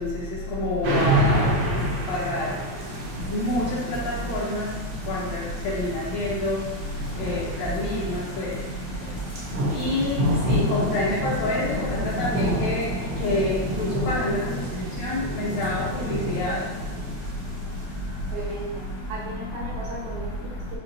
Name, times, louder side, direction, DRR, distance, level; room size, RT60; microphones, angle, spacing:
voice 1, 0.5-1.4 2.1-2.5 3.3-4.0 4.2-4.7 5.1-5.4 5.7-6.6 7.2-8.5 9.7-10.2 10.5-12.8 13.2-14.5 15.0-16.6, left 1 dB, 70° left, -5 dB, 1.9 m, -27 dB
sound 1, 0.8-18.6, equal, 65° right, 1.8 m, -29 dB
voice 2, 18.3-20.8, right 2 dB, 80° right, -6 dB, 2.6 m, -36 dB
5.8 x 2.4 x 3.8 m, 1.2 s
omnidirectional pair, 3.3 m